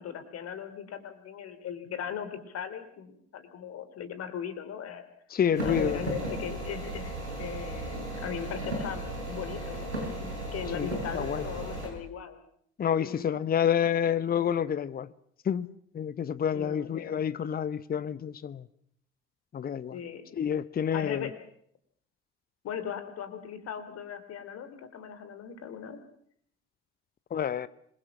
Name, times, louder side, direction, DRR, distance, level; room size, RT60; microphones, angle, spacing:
voice 1, 0.0-5.0 5.6-12.4 13.0-13.4 16.5-17.1 19.9-20.2 20.9-21.3 22.6-26.0, left 8 dB, 50° left, 3.3 m, -39 dB
voice 2, 5.3-6.1 10.7-11.4 12.8-15.1 15.4-15.7 15.9-18.7 19.5-20.0 20.3-21.3 27.3-27.7, left 8 dB, 30° left, 0.9 m, -29 dB
sound 1, 5.5-11.9, right 1 dB, 85° right, 6.5 m, -35 dB
26.0 x 22.0 x 6.1 m
figure-of-eight pair, 55°, 33 cm